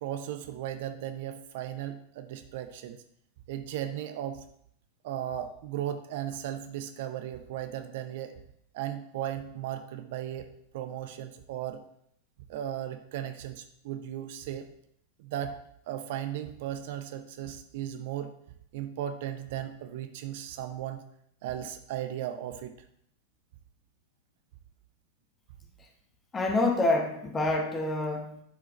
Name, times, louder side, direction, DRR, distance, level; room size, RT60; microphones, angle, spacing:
voice 1, 0.0-3.0 3.5-4.4 5.0-8.3 8.7-10.5 10.7-11.8 12.5-14.7 15.2-15.5 15.9-18.3 18.7-21.0 21.4-22.7, right 11 dB, 50° right, 8 dB, 0.6 m, -36 dB
voice 2, 26.3-28.4, left 2 dB, 20° left, 4 dB, 1.2 m, -27 dB
11.0 x 4.7 x 3.1 m, 0.69 s
figure-of-eight pair, 90°, 0 cm